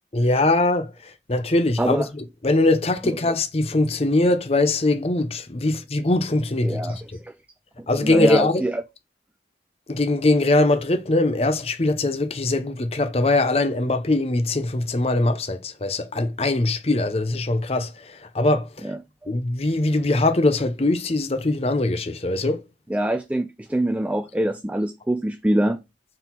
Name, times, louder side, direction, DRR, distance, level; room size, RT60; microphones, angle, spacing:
voice 1, 0.1-7.0 7.9-8.6 9.9-18.9 19.3-22.6, left 2 dB, 35° left, 0.7 m, -22 dB
voice 2, 6.6-7.3 8.0-8.8 18.8-19.3 22.9-25.8, right 1 dB, 10° right, 0.3 m, -25 dB
4.5 x 3.9 x 5.5 m
head